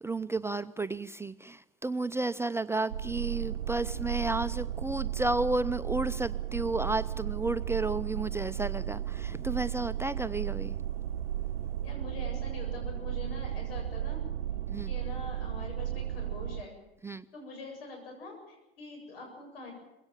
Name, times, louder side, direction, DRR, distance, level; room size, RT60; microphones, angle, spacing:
voice 1, 0.0-10.8 14.7-14.9 17.0-17.2, right 2 dB, 10° right, 11 dB, 0.7 m, -32 dB
sound 1, 2.9-16.6, right 11 dB, 80° right, 0.7 m, -34 dB
voice 2, 11.8-14.2 14.8-16.8 17.3-19.7, left 3 dB, 75° left, 2 dB, 8.0 m, -44 dB
22.0 x 17.0 x 9.0 m, 0.95 s
hypercardioid pair, 70°, 29 cm